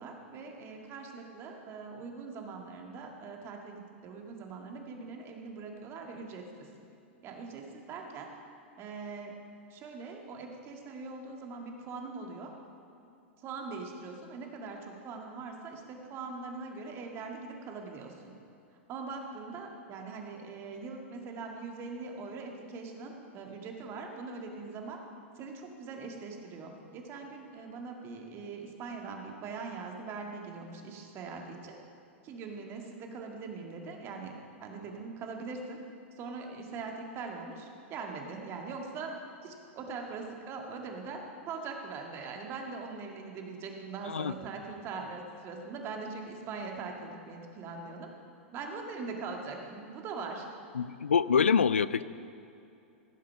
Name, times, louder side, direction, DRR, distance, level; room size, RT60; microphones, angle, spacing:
voice 1, 0.0-6.7 7.2-8.3 8.8-9.3 9.7-12.5 13.4-18.3 18.9-25.0 25.4-31.8 32.2-35.8 36.1-48.1 48.5-50.5, right 4 dB, 40° right, 2 dB, 2.0 m, -42 dB
voice 2, 50.7-52.0, left 6 dB, 85° left, 16 dB, 0.4 m, -25 dB
16.5 x 7.5 x 5.7 m, 2.7 s
hypercardioid pair, 100°, 7 cm